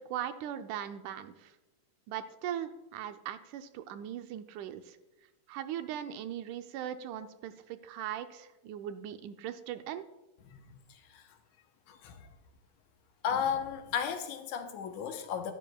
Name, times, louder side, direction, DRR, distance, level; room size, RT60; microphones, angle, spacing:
voice 1, 0.0-1.5 2.1-5.0 5.5-10.0, right 10 dB, 85° right, 9 dB, 2.1 m, -39 dB
voice 2, 10.5-11.2 11.9-12.3 13.2-15.5, left 7 dB, 80° left, 7 dB, 2.2 m, -35 dB
12.0 x 10.5 x 2.3 m, 1.1 s
omnidirectional pair, 3.5 m